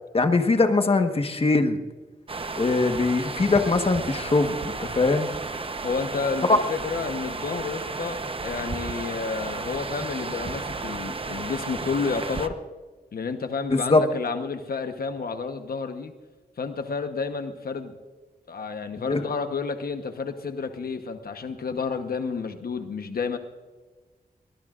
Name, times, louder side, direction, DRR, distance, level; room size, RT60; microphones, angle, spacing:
voice 1, 0.1-1.8 2.6-5.3 6.5-6.6 13.7-14.0 19.1-19.2, left 3 dB, 35° left, 6 dB, 1.4 m, -21 dB
sound 1, 2.3-12.5, right 3 dB, 35° right, 1.0 m, -33 dB
voice 2, 5.8-12.5 13.1-16.1 16.6-17.9 18.5-23.4, left 5 dB, 70° left, 7 dB, 1.1 m, -30 dB
23.0 x 19.5 x 2.5 m, 1.3 s
wide cardioid pair, 110°, 16 cm